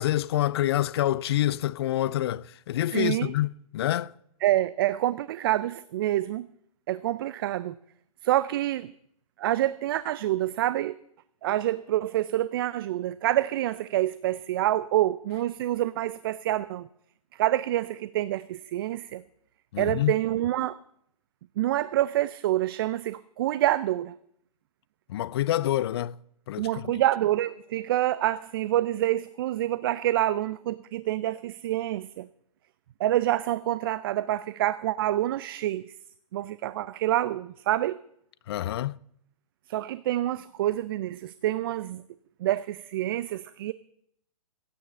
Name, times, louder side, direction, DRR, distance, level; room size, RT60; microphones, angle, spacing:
voice 1, 0.0-4.1 19.7-20.2 25.1-26.1 26.5-26.9 38.5-39.0, left 13 dB, 45° left, 0.5 m, -27 dB
voice 2, 2.9-3.3 4.4-6.5 6.9-7.8 8.2-8.9 9.4-11.0 11.4-16.9 17.4-19.2 19.8-20.8 21.6-24.2 26.6-32.3 33.0-35.9 36.3-38.0 39.7-42.0 42.4-43.7, right 14 dB, 40° right, 0.4 m, -27 dB
15.5 x 10.0 x 6.6 m
hypercardioid pair, 140°, 19 cm